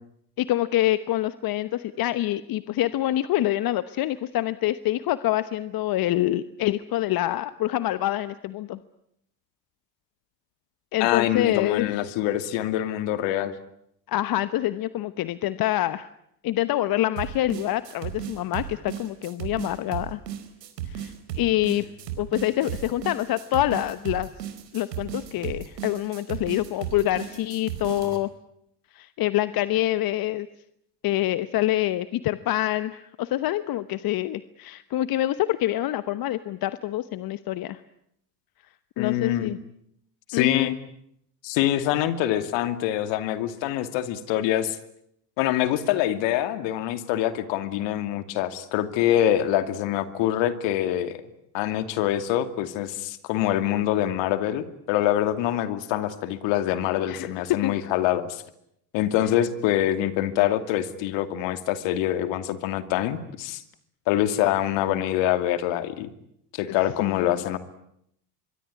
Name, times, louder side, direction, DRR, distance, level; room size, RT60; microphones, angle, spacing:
voice 1, 0.4-8.8 10.9-11.9 14.1-16.1 16.4-20.2 20.9-21.8 22.2-24.3 24.7-28.3 28.9-30.5 31.0-37.8 39.0-39.6 40.3-40.8 57.1-57.7 67.0-67.4, left 14 dB, 45° left, 14 dB, 1.1 m, -26 dB
voice 2, 11.0-13.5 39.0-39.6 40.3-40.7 41.4-44.8 45.4-51.2 51.5-58.4 58.9-63.6 64.1-66.1 66.5-67.6, left 12 dB, 65° left, 11 dB, 2.7 m, -25 dB
sound 1, 17.2-28.2, right 10 dB, 90° right, 4.5 m, -35 dB
25.0 x 23.0 x 9.8 m, 0.75 s
supercardioid pair, 95°, 49 cm